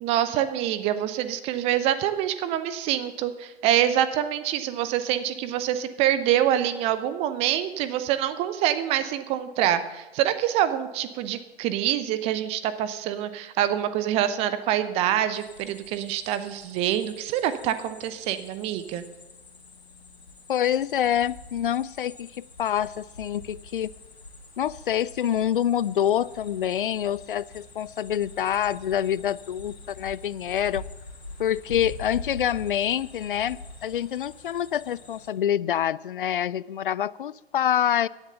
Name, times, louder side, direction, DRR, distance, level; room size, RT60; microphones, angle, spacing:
voice 1, 0.0-19.0, right 11 dB, 20° right, 12 dB, 0.7 m, -26 dB
sound 1, 15.3-35.3, left 3 dB, 70° left, 2.6 m, -45 dB
voice 2, 20.5-23.9 24.6-30.8 31.4-38.1, left 10 dB, 55° left, 21 dB, 0.5 m, -26 dB
16.5 x 10.5 x 6.9 m, 1.1 s
figure-of-eight pair, 120°, 32 cm